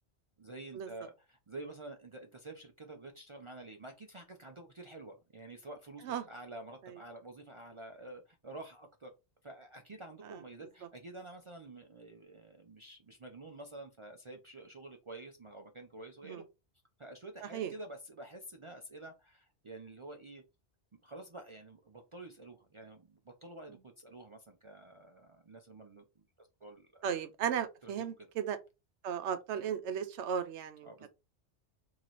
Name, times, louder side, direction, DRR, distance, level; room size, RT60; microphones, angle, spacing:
voice 1, 0.4-9.1 9.4-16.4 17.0-20.4 20.9-26.0 26.4-27.1 27.8-28.3 30.8-31.1, right 2 dB, 45° right, 0.4 m, -49 dB
voice 2, 27.0-28.6 29.0-31.1, right 8 dB, 75° right, 0.9 m, -35 dB
3.1 x 2.8 x 4.0 m
omnidirectional pair, 1.2 m